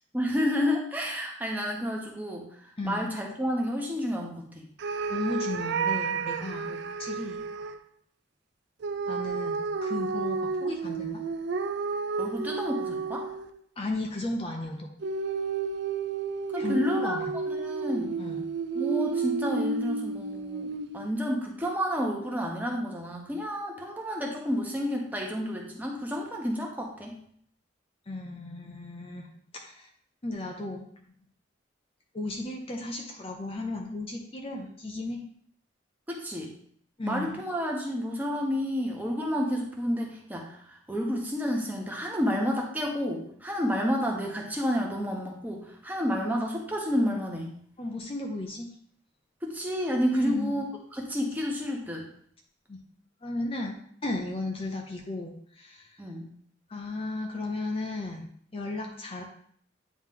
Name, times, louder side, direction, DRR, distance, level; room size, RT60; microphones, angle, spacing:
voice 1, 0.1-2.5 2.8-4.7 6.6-6.8 12.2-13.3 16.5-18.2 18.7-27.2 34.6-34.7 36.1-36.5 37.0-47.5 49.4-50.6 50.9-52.0 56.0-56.3, equal, 10° right, -1 dB, 1.0 m, -30 dB
voice 2, 2.8-3.1 5.1-6.7 7.0-7.4 9.1-11.2 13.8-14.9 16.6-17.3 18.2-18.4 28.1-29.3 29.5-29.9 30.2-31.1 32.1-35.2 37.0-37.4 47.8-48.7 50.1-50.6 52.7-52.8 53.2-53.8 54.0-56.0 56.7-58.3 58.5-59.2, left 2 dB, 30° left, 1 dB, 0.6 m, -35 dB
sound 1, 4.8-7.8 8.8-13.6 15.0-21.1, right 5 dB, 60° right, 0.4 m, -31 dB
9.0 x 3.2 x 3.7 m, 0.62 s
head